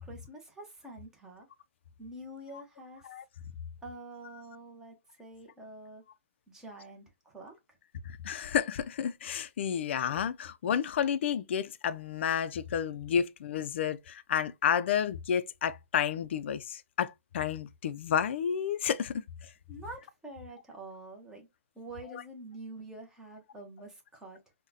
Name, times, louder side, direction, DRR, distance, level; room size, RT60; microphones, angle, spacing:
voice 1, 0.0-1.5 2.0-3.1 3.8-6.0 6.5-7.6 19.7-21.5 21.7-24.4, right 2 dB, 5° right, 0.7 m, -47 dB
voice 2, 8.0-19.5 22.1-22.2, left 8 dB, 55° left, 0.4 m, -31 dB
3.8 x 2.1 x 2.6 m
hypercardioid pair, 160°, 8 cm